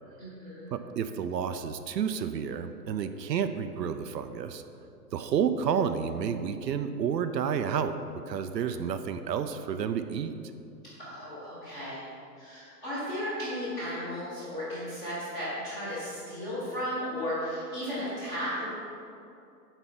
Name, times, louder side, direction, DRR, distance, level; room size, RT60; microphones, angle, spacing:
voice 1, 0.2-0.7 11.0-12.0 12.4-18.7, equal, 10° left, -11 dB, 1.3 m, -35 dB
voice 2, 0.7-4.6 5.1-8.0 8.3-10.4, right 7 dB, 75° right, 9 dB, 0.6 m, -30 dB
8.1 x 4.5 x 6.1 m, 2.6 s
hypercardioid pair, 175°, 50 cm